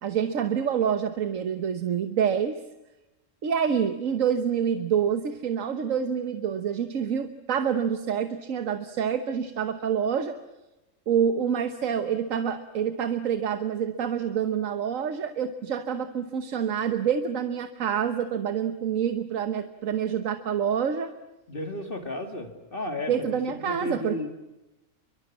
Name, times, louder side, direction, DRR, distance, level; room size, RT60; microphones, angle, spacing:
voice 1, 0.0-2.6 3.4-10.4 11.1-21.1 23.1-24.2, right 8 dB, 85° right, 9 dB, 1.5 m, -27 dB
voice 2, 21.5-23.4 23.7-24.3, left 1 dB, 45° left, 5 dB, 2.5 m, -33 dB
29.5 x 23.5 x 7.4 m, 1.0 s
omnidirectional pair, 1.3 m